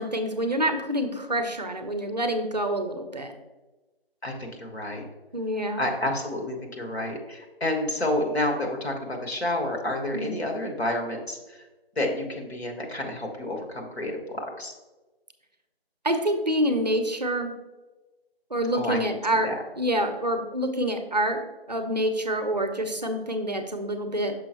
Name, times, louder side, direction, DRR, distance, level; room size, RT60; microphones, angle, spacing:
voice 1, 0.0-3.3 5.3-5.8 10.1-10.3 16.0-17.5 18.5-24.3, right 1 dB, 40° right, 7 dB, 0.5 m, -27 dB
voice 2, 4.2-5.0 5.8-11.6 11.9-14.7 18.7-19.0 19.4-19.5, left 1 dB, 80° left, 1 dB, 1.6 m, -29 dB
6.1 x 5.5 x 2.9 m, 1.2 s
figure-of-eight pair, 170°, 31 cm